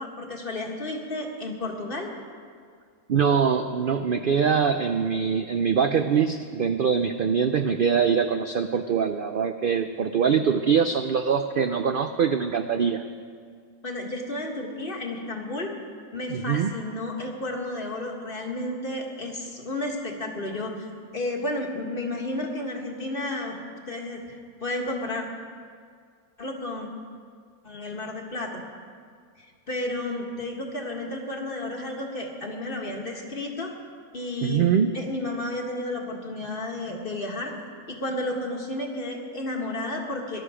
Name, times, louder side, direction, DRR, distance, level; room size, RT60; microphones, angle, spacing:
voice 1, 0.0-2.1 13.8-15.7 16.1-20.9 21.1-23.6 23.9-25.2 26.4-26.9 27.6-28.6 29.4-33.7 34.1-34.7 34.9-37.5 38.0-40.4, left 1 dB, 40° left, 1 dB, 1.8 m, -32 dB
voice 2, 3.1-13.0 16.3-16.7 34.4-35.0, right 6 dB, 65° right, 8 dB, 0.5 m, -23 dB
18.0 x 11.5 x 5.0 m, 2.1 s
omnidirectional pair, 1.5 m